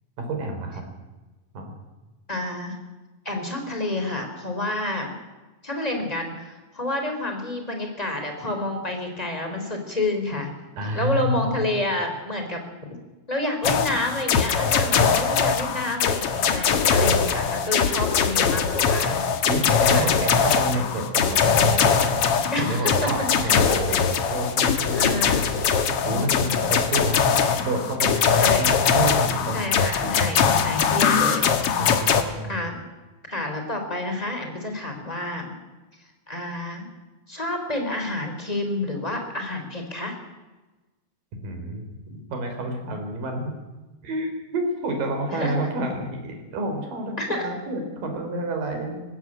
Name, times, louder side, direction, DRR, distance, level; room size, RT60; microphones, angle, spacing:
voice 1, 0.2-0.8 1.5-1.7 10.8-11.6 19.5-22.2 22.6-25.4 26.0-28.7 28.9-29.8 30.0-30.2 31.8-32.6 41.4-41.9 42.3-43.5 44.0-49.0, right 1 dB, 70° right, 4 dB, 5.6 m, -29 dB
voice 2, 2.3-2.8 3.2-5.1 5.6-10.5 10.9-12.6 13.3-19.2 19.8-20.1 22.5-23.6 24.9-25.4 26.0-26.6 28.4-28.7 29.5-31.8 32.5-32.8 33.3-35.5 36.3-36.9 37.3-40.1 45.3-45.5 47.2-47.5, left 2 dB, 10° left, 4 dB, 3.8 m, -29 dB
sound 1, 13.6-32.2, left 6 dB, 55° left, 1.9 m, -21 dB
19.5 x 16.0 x 9.0 m, 1.2 s
omnidirectional pair, 4.1 m